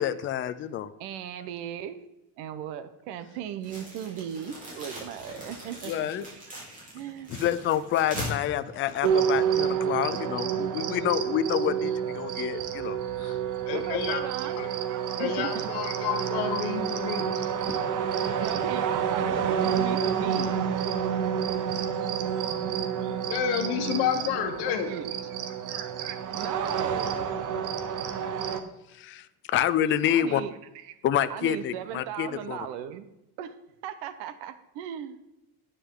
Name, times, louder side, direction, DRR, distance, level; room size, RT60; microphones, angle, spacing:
voice 1, 0.0-0.9 5.9-6.2 7.4-13.3 29.0-29.2 29.5-30.4 31.0-32.6, left 11 dB, 30° left, 12 dB, 0.4 m, -28 dB
voice 2, 1.0-2.0 2.4-6.5 6.9-7.3 13.7-15.7 16.2-16.3 16.6-16.7 18.4-20.7 23.9-25.4 25.7-27.3 30.1-30.9 31.3-33.0 33.4-33.6 33.8-35.2, right 9 dB, 90° right, 11 dB, 1.0 m, -37 dB
sound 1, 3.6-9.7, left 1 dB, 20° right, 4.4 m, -40 dB
sound 2, 9.0-28.6, right 8 dB, 50° right, 1.1 m, -29 dB
voice 3, 13.7-14.2 14.6-14.7 15.2-17.3 23.3-24.9, left 8 dB, 75° left, 5 dB, 1.5 m, -29 dB
9.9 x 9.8 x 3.8 m, 0.93 s
cardioid pair, 160°, 39 cm